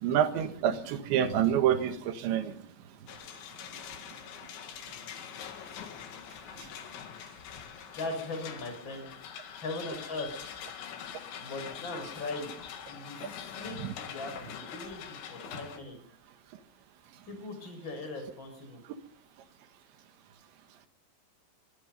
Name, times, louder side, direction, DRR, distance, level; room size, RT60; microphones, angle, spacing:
voice 1, 0.0-2.5 6.6-6.7 13.8-13.9, right 10 dB, 80° right, 9 dB, 3.9 m, -27 dB
sound 1, 3.1-15.8, left 8 dB, 85° left, 4.4 m, -44 dB
voice 2, 7.9-9.1 9.6-10.3 11.4-12.5 12.9-16.0 17.3-18.8, left 2 dB, 25° left, 5 dB, 6.6 m, -39 dB
22.5 x 22.5 x 5.4 m, 0.64 s
omnidirectional pair, 5.1 m